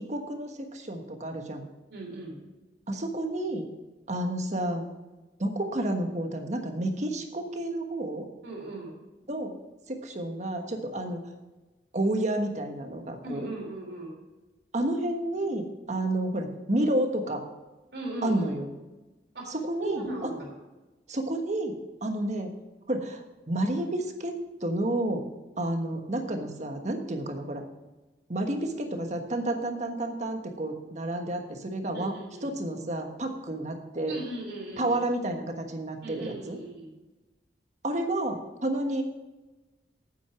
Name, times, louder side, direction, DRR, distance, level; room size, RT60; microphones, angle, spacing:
voice 1, 0.1-1.6 2.9-3.7 4.1-4.8 5.4-8.3 9.3-9.5 9.9-11.2 11.9-13.5 14.7-17.4 18.2-18.7 19.5-20.3 21.1-21.8 22.0-22.5 22.9-25.2 25.6-27.6 28.3-32.1 32.4-34.1 34.8-36.6 37.8-39.0, right 1 dB, 40° right, 4 dB, 1.4 m, -30 dB
voice 2, 1.9-2.4 8.4-8.9 13.2-14.1 17.9-18.4 19.3-20.5 31.9-32.5 34.1-35.0 36.0-36.9, right 1 dB, 65° right, -1 dB, 3.4 m, -38 dB
8.9 x 8.3 x 5.9 m, 1.1 s
head